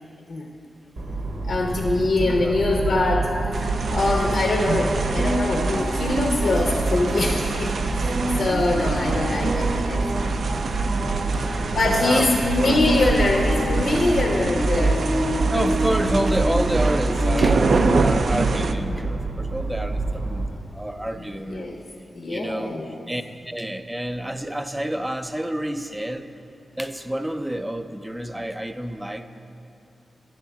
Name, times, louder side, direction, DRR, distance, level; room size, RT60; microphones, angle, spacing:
sound 1, 1.0-20.5, right 2 dB, 90° right, 0.9 m, -25 dB
voice 1, 1.4-10.1 11.7-15.0 21.1-21.8 22.1-23.0, left 2 dB, 70° left, 1 dB, 0.7 m, -23 dB
voice 2, 2.2-2.6 10.6-11.0 11.4-12.3 12.6-12.8 15.4-21.7 22.3-22.8 23.1-26.3 26.8-29.3, right 1 dB, 10° right, 8 dB, 0.4 m, -29 dB
sound 2, 3.5-18.7, right 4 dB, 70° right, 0.3 m, -28 dB
10.5 x 3.7 x 7.0 m, 2.7 s
cardioid pair, 70°, 0 cm